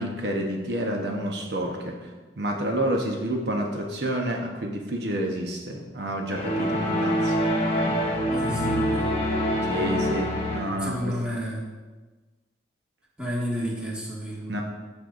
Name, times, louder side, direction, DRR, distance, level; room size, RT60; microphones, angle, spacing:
voice 1, 0.0-2.1 2.4-7.4 9.6-11.2 14.5-14.6, right 1 dB, 70° right, 1 dB, 0.9 m, -29 dB
sound 1, 6.3-10.9, equal, 35° left, 1.7 m, -25 dB
voice 2, 8.3-9.1 10.8-11.7 13.2-14.6, equal, 5° right, -6 dB, 1.8 m, -31 dB
14.0 x 5.4 x 2.6 m, 1.3 s
head